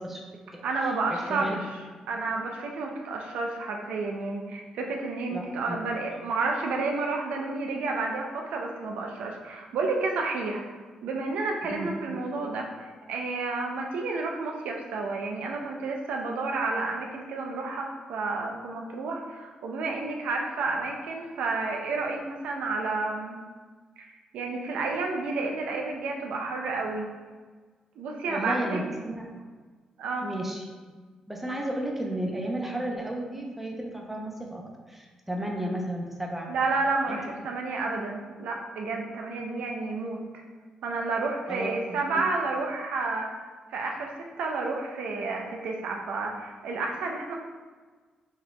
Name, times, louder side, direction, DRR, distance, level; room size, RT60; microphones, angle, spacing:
voice 1, 0.0-1.8 5.3-5.9 11.7-12.2 28.3-29.3 30.2-30.7 31.3-36.5 37.1-37.2 41.5-42.2, right 1 dB, 10° right, 0 dB, 0.8 m, -34 dB
voice 2, 0.6-1.6 2.1-10.6 11.0-23.4 24.0-27.1 28.0-28.8 30.0-30.3 36.5-40.2 40.8-43.3 43.7-47.3, right 3 dB, 85° right, 1 dB, 0.5 m, -30 dB
4.7 x 2.9 x 3.3 m, 1.4 s
cardioid pair, 80°, 2 cm